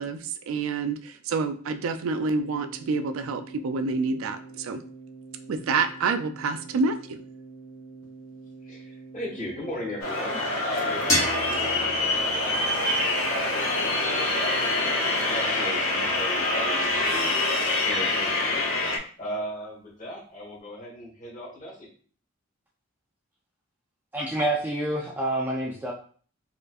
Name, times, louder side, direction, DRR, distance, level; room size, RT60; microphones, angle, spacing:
voice 1, 0.0-4.8 5.5-7.2, right 4 dB, 75° right, 8 dB, 0.4 m, -28 dB
Keyboard (musical), 2.4-17.4, right 5 dB, 40° right, 0.8 m, -44 dB
voice 2, 8.6-17.4 17.8-18.7 19.2-21.9, equal, 35° left, -3 dB, 1.4 m, -38 dB
sound 1, 10.0-19.0, left 2 dB, 90° left, 0.8 m, -25 dB
sound 2, 11.1-13.9, left 1 dB, 15° left, 1.0 m, -31 dB
voice 3, 24.1-25.9, right 1 dB, 10° right, -3 dB, 0.4 m, -27 dB
4.4 x 2.5 x 2.4 m, 0.43 s
head